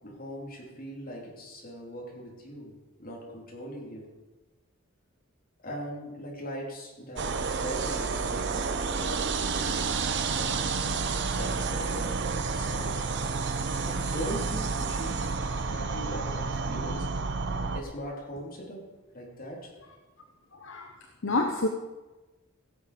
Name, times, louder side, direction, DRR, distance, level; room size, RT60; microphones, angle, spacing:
voice 1, 0.0-2.7 3.0-4.1 5.6-9.8 10.3-12.9 13.9-15.2 15.6-17.1 17.7-18.8 19.1-19.7, equal, 45° left, -2 dB, 3.5 m, -40 dB
sound 1, 7.2-17.8, right 4 dB, 60° right, 0.8 m, -30 dB
voice 2, 20.6-20.9 21.2-21.7, left 2 dB, 65° left, 4 dB, 0.9 m, -27 dB
16.5 x 7.5 x 5.1 m, 1.2 s
head